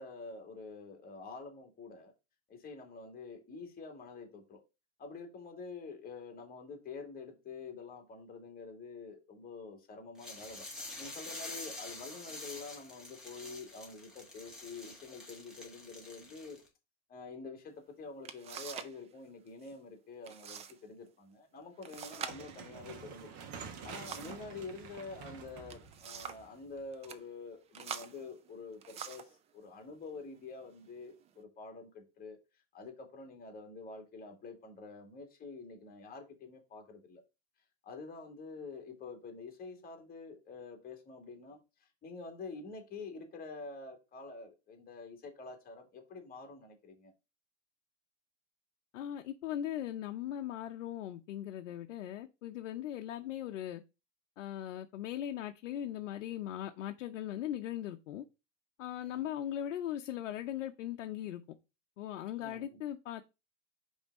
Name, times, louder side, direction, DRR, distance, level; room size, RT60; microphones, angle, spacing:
voice 1, 0.0-2.1 2.5-4.6 5.0-10.7 11.0-16.6 17.1-23.4 23.8-32.4 32.7-37.2 37.8-47.1 59.0-59.3 62.4-62.8, left 4 dB, 25° left, 2.1 m, -47 dB
sound 1, 10.2-16.7, left 2 dB, ahead, 1.9 m, -47 dB
sound 2, 17.7-17.8 18.2-19.0 19.3-19.7 20.2-20.8 21.1-21.2 21.8-24.5 25.5-26.5 26.9-27.2 27.7-29.4 30.1-30.3 30.9-31.4, right 7 dB, 20° right, 0.4 m, -46 dB
sound 3, 21.9-27.1, right 6 dB, 50° right, 1.4 m, -49 dB
voice 2, 48.9-53.8 54.4-58.2 58.8-61.4 62.0-63.2, left 11 dB, 85° left, 0.7 m, -39 dB
5.3 x 3.5 x 5.2 m
supercardioid pair, 130°, 36 cm